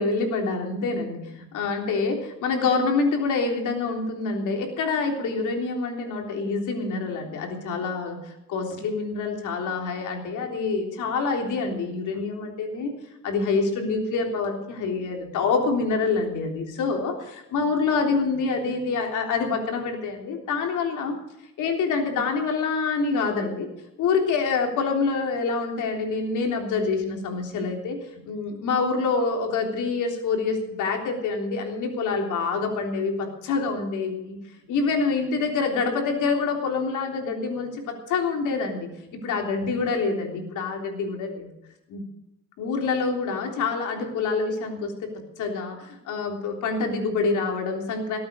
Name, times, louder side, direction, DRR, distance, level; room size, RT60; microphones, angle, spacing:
voice 1, 0.0-12.9 13.2-21.2 21.6-23.7 24.0-34.4 34.7-41.5 41.9-42.0 42.6-48.2, left 4 dB, 85° left, 2 dB, 3.5 m, -26 dB
18.5 x 8.7 x 6.8 m, 0.88 s
cardioid pair, 90°, 30 cm